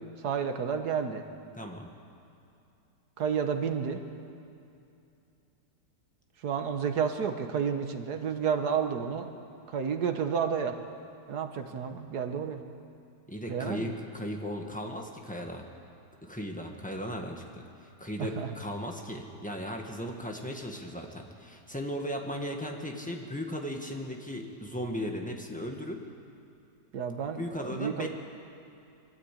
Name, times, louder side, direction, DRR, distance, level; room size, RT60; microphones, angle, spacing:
voice 1, 0.2-1.3 3.2-4.0 6.4-9.3 9.7-10.8 11.3-12.6 13.5-13.9 18.2-18.5 26.9-28.1, right 7 dB, 65° right, 7 dB, 1.6 m, -31 dB
voice 2, 1.5-1.9 13.3-15.6 16.2-26.0 27.4-28.1, equal, 5° left, 2 dB, 1.5 m, -37 dB
22.5 x 14.0 x 8.5 m, 2.6 s
omnidirectional pair, 1.9 m